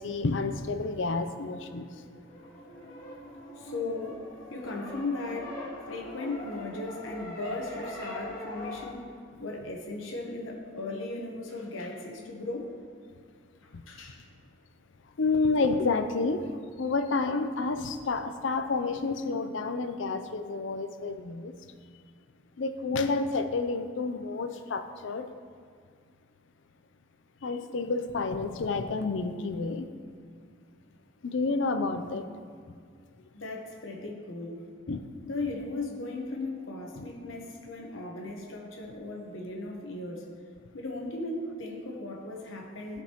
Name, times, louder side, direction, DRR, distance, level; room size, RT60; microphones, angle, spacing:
voice 1, 0.0-2.0 13.7-13.8 15.2-21.5 22.6-25.3 27.4-29.9 31.2-32.3 34.9-35.0 37.0-37.1, left 3 dB, 70° left, 8 dB, 0.5 m, -30 dB
sound 1, 1.9-8.9, left 1 dB, 45° left, 1.8 m, -42 dB
voice 2, 3.6-5.6 5.9-9.0 9.4-12.7 13.9-14.2 33.3-34.6 35.2-40.3 40.7-43.0, left 2 dB, 85° left, 1 dB, 1.0 m, -37 dB
14.5 x 5.2 x 3.0 m, 2.1 s
head